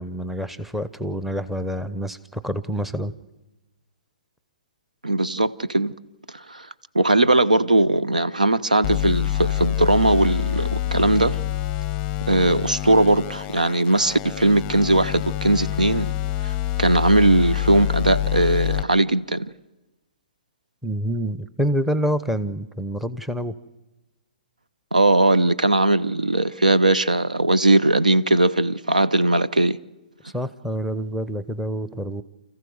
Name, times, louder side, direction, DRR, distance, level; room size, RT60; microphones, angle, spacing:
voice 1, 0.0-3.1 20.8-23.5 30.2-32.2, equal, 5° right, 0.8 m, -27 dB
voice 2, 5.0-5.9 6.3-6.7 6.9-11.4 12.3-16.1 16.4-19.5 24.9-29.8, right 2 dB, 85° right, 0.8 m, -19 dB
sound 1, 8.8-18.8, left 13 dB, 25° left, 0.6 m, -26 dB
29.0 x 14.5 x 7.9 m
figure-of-eight pair, 120°, 4 cm